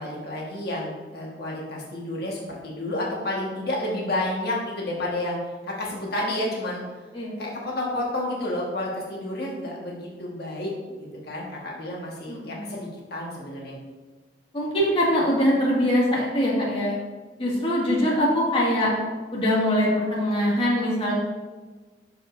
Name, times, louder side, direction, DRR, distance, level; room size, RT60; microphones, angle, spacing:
voice 1, 0.0-6.8 7.4-13.8, left 1 dB, 65° left, -3 dB, 1.5 m, -30 dB
voice 2, 12.3-12.7 14.5-17.0 17.4-18.9 19.3-21.1, equal, 35° left, -5 dB, 2.0 m, -23 dB
12.0 x 4.9 x 2.6 m, 1.3 s
head